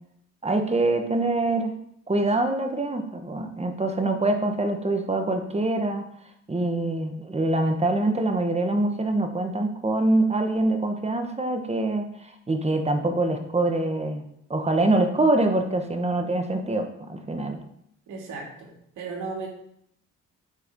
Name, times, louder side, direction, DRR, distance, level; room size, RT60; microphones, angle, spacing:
voice 1, 0.4-1.7 2.1-6.0 6.5-12.0 12.5-17.6, right 2 dB, 20° right, 5 dB, 1.3 m, -24 dB
voice 2, 18.1-19.5, right 4 dB, 80° right, 0 dB, 2.6 m, -35 dB
8.4 x 4.7 x 5.3 m, 0.72 s
cardioid pair, 90°, 30 cm